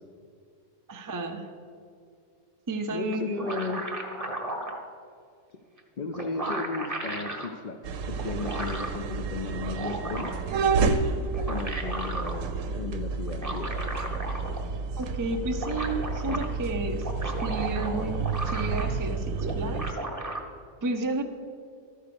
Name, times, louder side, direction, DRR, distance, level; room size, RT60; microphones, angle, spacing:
voice 1, 0.9-1.5 2.7-3.6 15.0-20.0 20.8-21.2, right 2 dB, 35° right, 4 dB, 0.3 m, -32 dB
voice 2, 2.9-3.9 6.0-10.4 11.5-13.8, left 4 dB, 55° left, 7 dB, 0.5 m, -35 dB
sound 1, 3.1-4.8 5.8-5.9 6.1-7.5 8.2-9.0 9.5-10.5 11.2-12.4 13.3-14.7 15.0-15.1 15.3-16.5 16.9-19.1 19.4-20.4, right 2 dB, 15° right, 0.8 m, -35 dB
sound 2, 7.8-19.9, right 4 dB, 85° right, 1.0 m, -30 dB
13.0 x 4.7 x 6.8 m, 2.3 s
omnidirectional pair, 1.3 m